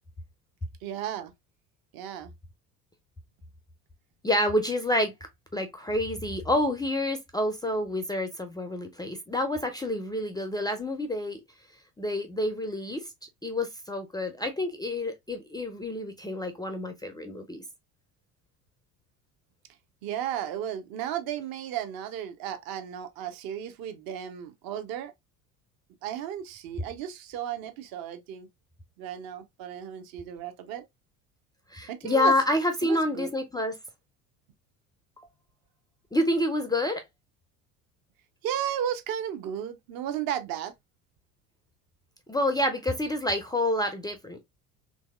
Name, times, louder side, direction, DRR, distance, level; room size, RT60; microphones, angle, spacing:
voice 1, 0.8-1.3 1.9-2.3 20.0-25.1 26.0-28.5 29.0-30.8 31.9-32.3 32.8-33.3 38.4-40.7, right 10 dB, 50° right, 0.7 m, -34 dB
voice 2, 4.2-5.1 5.5-11.4 12.0-13.1 13.4-17.6 31.7-33.8 36.1-37.0 42.3-44.4, left 1 dB, 10° left, 0.4 m, -28 dB
3.0 x 2.7 x 2.2 m
hypercardioid pair, 60°, 45 cm